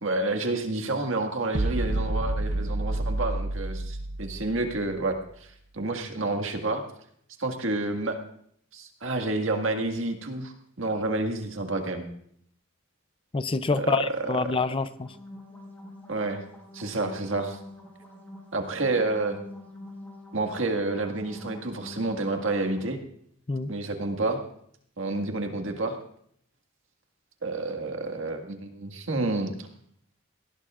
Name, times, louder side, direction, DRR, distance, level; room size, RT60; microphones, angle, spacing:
voice 1, 0.0-5.1 5.7-6.8 7.4-8.2 8.7-12.0 13.8-14.1 16.1-16.4 16.7-17.6 18.5-19.4 20.3-23.0 23.7-24.4 25.0-26.0 27.4-29.7, right 2 dB, 65° right, 4 dB, 1.9 m, -29 dB
sound 1, 1.5-5.0, right 2 dB, 40° right, 0.6 m, -29 dB
voice 2, 13.3-15.1 23.5-23.7, left 3 dB, 25° left, 12 dB, 0.5 m, -27 dB
sound 2, 14.9-22.9, left 1 dB, 10° left, 5.6 m, -45 dB
19.0 x 17.0 x 2.5 m, 0.66 s
head